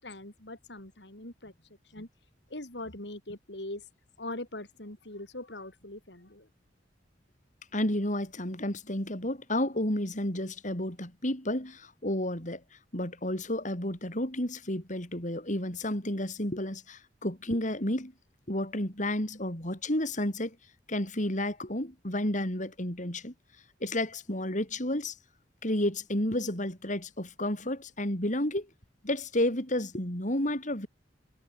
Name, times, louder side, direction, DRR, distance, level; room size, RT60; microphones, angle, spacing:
voice 1, 0.0-1.5 1.8-2.1 2.5-3.9 4.2-6.5, left 1 dB, 70° left, 5.5 m, -41 dB
voice 2, 7.7-12.6 12.9-18.1 18.5-20.6 20.9-23.3 23.8-25.2 25.6-28.7 29.0-30.9, left 1 dB, 45° left, 7.9 m, -31 dB
head